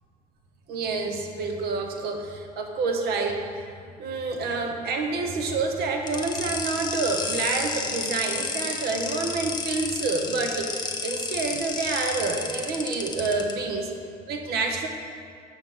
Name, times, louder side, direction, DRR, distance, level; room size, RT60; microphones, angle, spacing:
voice 1, 0.7-3.4 4.0-13.9 14.3-14.9, right 3 dB, 70° right, 3 dB, 0.8 m, -28 dB
sound 1, 6.1-13.5, left 4 dB, 25° left, 0.7 m, -31 dB
6.2 x 3.7 x 6.2 m, 2.2 s
cardioid pair, 110°, 17 cm